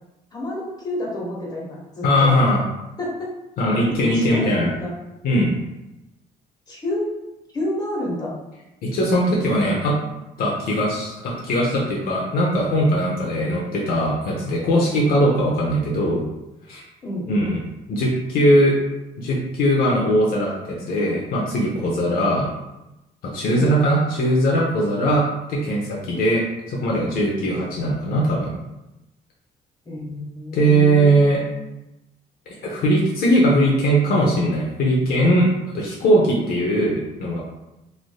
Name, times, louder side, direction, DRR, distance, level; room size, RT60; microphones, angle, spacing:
voice 1, 0.3-2.3 3.0-3.3 4.0-4.9 6.7-7.1 7.5-8.3 9.3-10.1 17.0-17.3 23.5-23.7 29.8-31.6, left 1 dB, 25° left, -5 dB, 1.0 m, -29 dB
voice 2, 2.0-2.6 3.6-4.7 5.2-5.5 8.8-10.0 10.4-16.2 16.7-16.8 17.3-17.6 17.9-18.7 19.2-22.5 23.2-28.5 30.5-31.4 32.5-37.4, equal, 65° left, -3 dB, 0.6 m, -20 dB
3.2 x 2.5 x 2.2 m, 0.96 s
cardioid pair, 110°, 17 cm